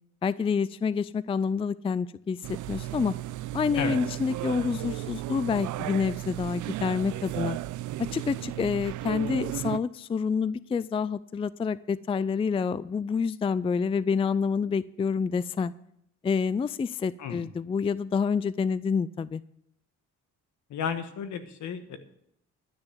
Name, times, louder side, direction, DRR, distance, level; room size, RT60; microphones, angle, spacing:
voice 1, 0.2-3.2 3.5-7.6 8.0-15.7 16.2-19.4, left 5 dB, 20° left, 18 dB, 0.3 m, -28 dB
sound 1, 2.4-9.8, right 15 dB, 75° right, 0.5 m, -34 dB
voice 2, 20.7-22.0, left 7 dB, 70° left, 9 dB, 1.4 m, -33 dB
12.0 x 6.8 x 8.2 m, 0.75 s
cardioid pair, 90°, 30 cm